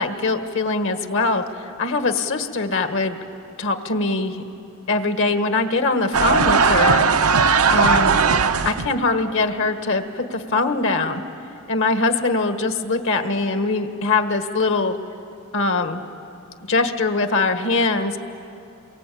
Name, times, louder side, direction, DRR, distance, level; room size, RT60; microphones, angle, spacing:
voice 1, 0.0-3.2 3.6-4.4 4.9-7.1 7.7-8.2 8.6-11.2 11.7-15.0 15.5-16.0 16.6-18.2, left 3 dB, 65° left, 8 dB, 1.6 m, -22 dB
sound 1, 6.1-8.9, right 5 dB, 85° right, 0.8 m, -17 dB
28.5 x 23.0 x 8.5 m, 2.6 s
head